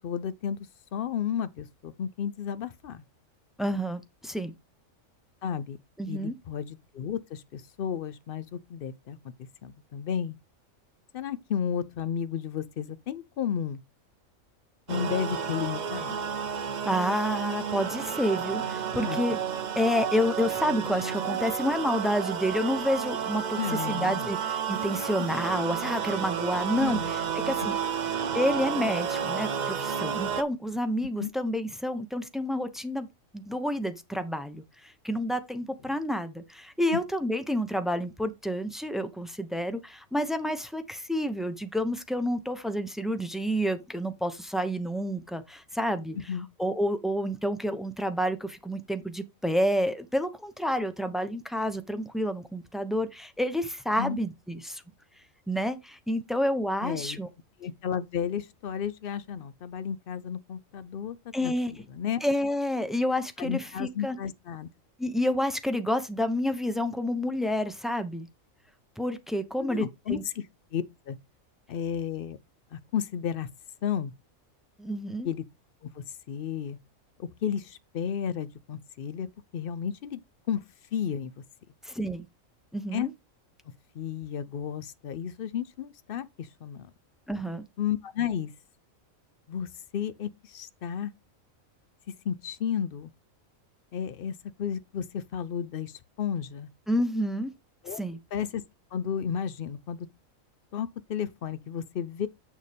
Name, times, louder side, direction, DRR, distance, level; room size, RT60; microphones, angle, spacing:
voice 1, 0.0-3.0 5.4-5.8 6.1-9.2 9.6-10.4 11.1-13.8 14.9-16.3 19.0-19.2 23.6-24.3 25.2-25.4 26.8-27.1 27.6-27.7 28.0-28.1 31.2-31.3 36.9-37.0 46.1-46.5 53.9-54.2 56.8-57.2 57.6-62.2 63.4-64.7 69.6-70.4 70.7-71.2 71.7-72.4 72.7-73.5 73.8-74.1 75.2-75.4 75.9-76.8 77.2-80.2 80.5-80.6 80.9-81.3 82.9-83.1 83.9-86.9 87.8-88.5 89.5-91.1 92.1-93.1 93.9-96.7 97.8-98.0 98.3-98.6 98.9-100.1 100.7-102.3, left 8 dB, 60° left, 0.6 m, -33 dB
voice 2, 3.6-4.5 6.0-6.3 16.8-19.4 19.8-23.6 23.9-27.0 27.5-27.7 28.3-33.1 33.3-46.2 46.6-54.8 55.5-57.3 61.3-61.7 62.2-64.2 65.0-68.3 69.0-70.2 74.8-75.3 81.8-82.3 82.7-83.1 87.3-87.6 96.9-97.5 98.0-98.2, equal, ahead, 0.4 m, -29 dB
sound 1, 14.9-30.4, right 7 dB, 45° right, 0.6 m, -31 dB
7.2 x 6.6 x 3.4 m
omnidirectional pair, 1.4 m